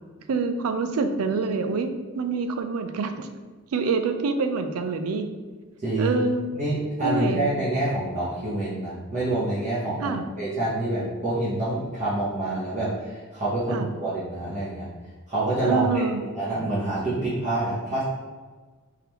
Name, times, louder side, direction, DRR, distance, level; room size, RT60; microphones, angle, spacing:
voice 1, 0.3-3.3 3.7-5.3 6.0-6.4 7.0-7.5 10.0-10.2 13.7-13.9 15.7-16.2, right 4 dB, 90° right, 8 dB, 0.4 m, -26 dB
voice 2, 5.8-6.2 6.5-14.9 15.3-18.0, right 2 dB, 35° right, -10 dB, 0.9 m, -27 dB
3.7 x 3.3 x 3.0 m, 1.4 s
head